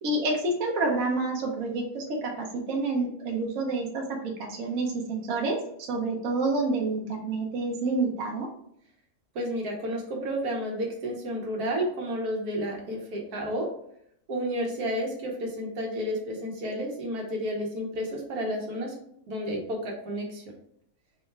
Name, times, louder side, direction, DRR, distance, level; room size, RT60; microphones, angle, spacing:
voice 1, 0.0-4.0 4.4-5.6 5.9-8.5, right 2 dB, 70° right, 0 dB, 1.1 m, -28 dB
voice 2, 9.3-13.7 14.3-18.9 19.3-20.4, equal, 85° right, -1 dB, 1.4 m, -31 dB
4.7 x 2.2 x 3.2 m, 0.70 s
omnidirectional pair, 1.6 m